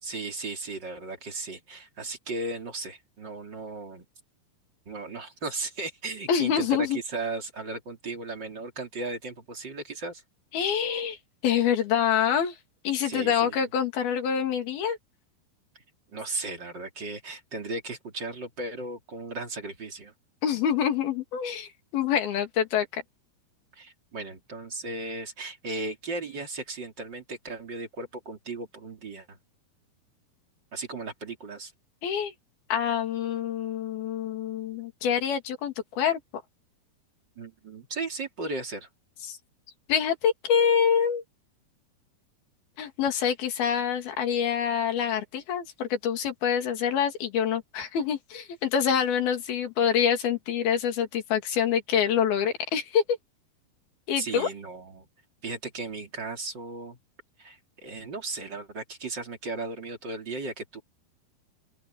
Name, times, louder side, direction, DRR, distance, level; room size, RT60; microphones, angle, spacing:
voice 1, 0.0-4.0 4.8-10.2 13.0-13.6 16.1-20.1 23.7-29.4 30.7-31.7 37.4-38.9 54.2-55.1 55.4-57.0 57.4-60.8, right 3 dB, 30° right, 3.2 m, -36 dB
voice 2, 6.3-7.0 10.5-11.2 11.4-12.6 12.8-15.0 20.4-23.0 32.0-32.3 32.7-36.2 39.3-39.4 39.9-41.2 42.8-53.2 54.1-54.5, left 8 dB, 70° left, 4.6 m, -26 dB
open air
omnidirectional pair, 4.5 m